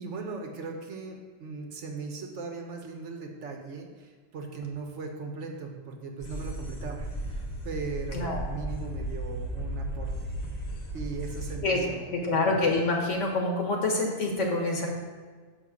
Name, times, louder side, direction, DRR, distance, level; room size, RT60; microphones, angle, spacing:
voice 1, 0.0-10.3 10.9-12.6, right 4 dB, 65° right, 2 dB, 1.2 m, -38 dB
sound 1, 6.2-11.6, right 1 dB, 35° left, 1.0 m, -35 dB
voice 2, 8.1-8.5 11.6-11.8 12.1-14.9, left 2 dB, 70° left, 1 dB, 1.6 m, -26 dB
7.0 x 5.5 x 5.0 m, 1.5 s
omnidirectional pair, 1.3 m